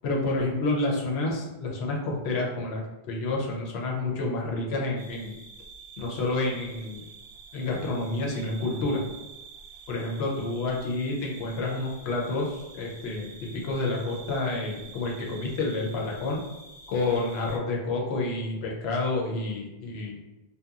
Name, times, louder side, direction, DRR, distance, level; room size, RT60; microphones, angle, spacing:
voice 1, 0.0-2.8 3.1-5.4 6.0-7.1 7.5-9.0 9.9-16.4 16.9-20.2, left 2 dB, 85° left, -2 dB, 0.9 m, -29 dB
sound 1, 5.0-17.6, right 4 dB, 85° right, 0.8 m, -48 dB
2.7 x 2.2 x 2.3 m, 0.99 s
omnidirectional pair, 1.1 m